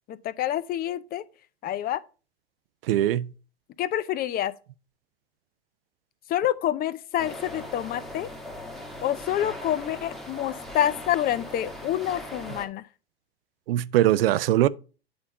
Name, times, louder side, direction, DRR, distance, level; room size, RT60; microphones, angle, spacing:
voice 1, 0.1-1.2 1.6-2.0 3.8-4.5 6.3-8.3 9.0-12.8, left 11 dB, 30° left, 0.6 m, -27 dB
voice 2, 2.9-3.3 13.7-14.7, right 13 dB, 70° right, 0.6 m, -21 dB
sound 1, 7.2-12.7, left 1 dB, ahead, 1.3 m, -39 dB
8.6 x 4.2 x 5.3 m
hypercardioid pair, 95°, 30 cm